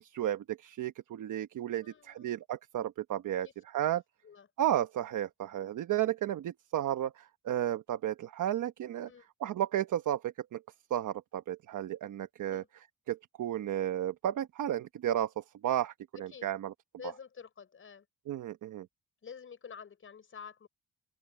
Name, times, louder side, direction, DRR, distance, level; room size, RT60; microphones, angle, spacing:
voice 1, 0.0-4.0 4.6-9.1 9.4-10.6 10.9-12.6 13.1-16.7 18.3-18.9, right 11 dB, 70° right, 1.1 m, -33 dB
voice 2, 1.7-2.4 3.4-3.8 4.2-4.5 9.0-9.3 12.5-12.7 16.1-16.5 17.0-18.1 19.2-20.7, left 6 dB, 40° left, 5.4 m, -49 dB
open air
cardioid pair, 140°, 32 cm